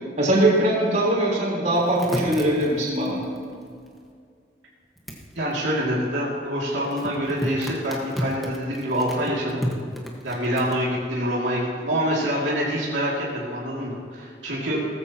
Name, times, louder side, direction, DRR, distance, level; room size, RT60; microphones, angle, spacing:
voice 1, 0.2-3.2, right 1 dB, 40° right, -5 dB, 3.9 m, -21 dB
sound 1, 1.7-4.1 5.0-5.2 6.9-10.7, equal, ahead, 1.5 m, -32 dB
voice 2, 5.3-9.6 10.2-14.8, equal, 80° right, -6 dB, 2.6 m, -26 dB
18.0 x 14.5 x 3.0 m, 2.2 s
head